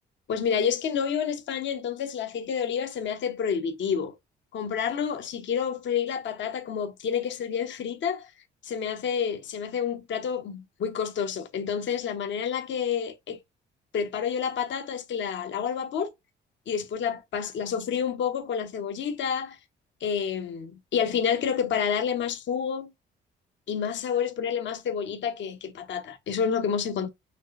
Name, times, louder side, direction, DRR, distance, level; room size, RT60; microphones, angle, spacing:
voice 1, 0.3-4.1 4.5-8.3 8.6-13.4 13.9-16.1 16.7-19.6 20.0-22.9 23.7-27.1, left 7 dB, 65° left, 1.1 m, -29 dB
6.5 x 3.2 x 2.5 m
cardioid pair, 90°, 20 cm